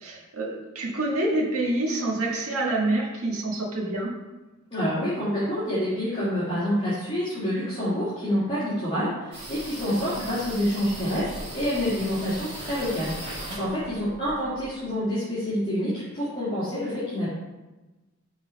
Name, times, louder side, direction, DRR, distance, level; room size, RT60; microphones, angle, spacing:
voice 1, 0.0-4.1, right 2 dB, 70° right, -3 dB, 1.7 m, -27 dB
voice 2, 4.7-11.3 11.5-17.3, equal, 25° left, -12 dB, 2.0 m, -27 dB
sound 1, 9.3-14.8, right 1 dB, 25° right, 2.0 m, -38 dB
5.8 x 4.4 x 5.5 m, 1.1 s
head